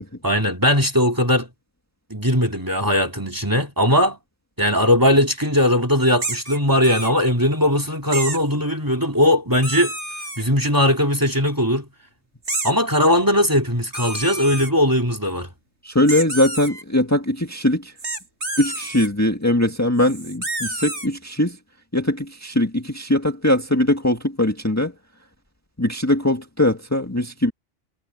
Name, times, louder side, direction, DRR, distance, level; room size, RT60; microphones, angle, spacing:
voice 1, 0.2-1.5 2.1-4.2 4.6-9.9 10.4-11.9 12.6-15.5, equal, 15° right, 3.1 m, -19 dB
sound 1, 6.2-7.1 8.1-8.4 9.6-10.4 12.4-12.7 13.9-14.7 16.1-16.8 18.0-19.1 20.0-21.1, right 2 dB, 60° right, 8.5 m, -29 dB
voice 2, 15.8-17.9 18.6-21.6 21.9-24.9 25.8-27.5, left 1 dB, 10° left, 1.9 m, -21 dB
omnidirectional pair, 1.3 m